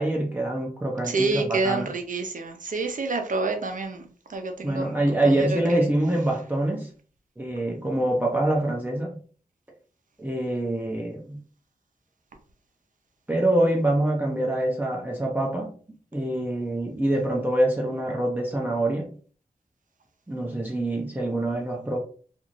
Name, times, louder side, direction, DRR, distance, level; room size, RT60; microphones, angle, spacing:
voice 1, 0.0-1.9 4.6-6.9 7.4-9.2 10.2-11.4 13.3-15.7 16.1-19.1 20.3-22.0, right 1 dB, 10° right, 0.5 m, -25 dB
voice 2, 1.0-5.9, right 3 dB, 60° right, 0.6 m, -28 dB
2.5 x 2.4 x 3.0 m
wide cardioid pair, 70°, 15 cm